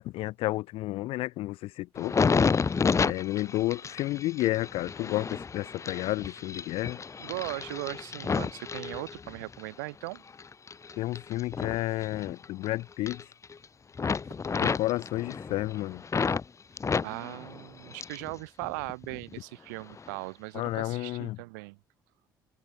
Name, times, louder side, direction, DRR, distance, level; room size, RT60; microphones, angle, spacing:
voice 1, 0.0-2.1 3.0-7.0 11.0-13.2 14.6-16.0 20.5-21.4, left 17 dB, 65° left, 2.3 m, -31 dB
sound 1, 1.9-9.6 10.1-12.7 12.9-13.6 13.9-16.4 16.8-18.3 18.6-19.3 19.9-20.1, left 5 dB, 30° left, 0.8 m, -31 dB
voice 2, 7.2-10.2 14.3-14.4 17.0-21.8, right 26 dB, 75° right, 1.6 m, -39 dB
figure-of-eight pair, 50°, 10 cm